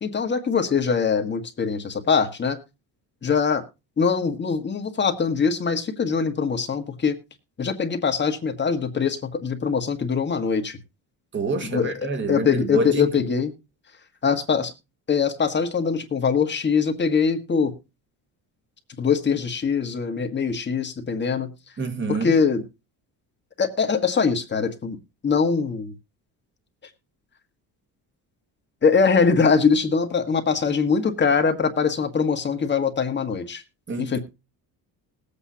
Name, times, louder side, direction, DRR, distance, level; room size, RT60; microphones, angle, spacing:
voice 1, 0.0-2.6 3.2-3.6 4.0-7.2 7.6-10.8 11.6-13.5 14.2-14.7 15.1-17.7 19.0-21.5 22.1-22.6 23.6-25.0 25.2-25.9 28.8-33.6 34.0-34.2, left 5 dB, 30° left, 1.6 m, -22 dB
voice 2, 11.3-13.0 21.8-22.3 33.9-34.2, right 3 dB, 30° right, 1.8 m, -27 dB
20.5 x 8.3 x 2.8 m
cardioid pair, 135°, 39 cm